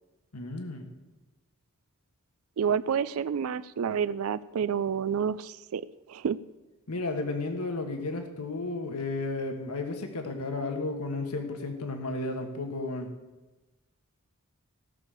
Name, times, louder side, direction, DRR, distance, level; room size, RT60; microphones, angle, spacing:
voice 1, 0.3-0.9 6.9-13.1, left 3 dB, 90° left, 5 dB, 1.5 m, -33 dB
voice 2, 2.6-5.8 6.1-6.4, right 7 dB, 70° right, 16 dB, 0.4 m, -29 dB
16.0 x 6.5 x 6.9 m, 1.1 s
head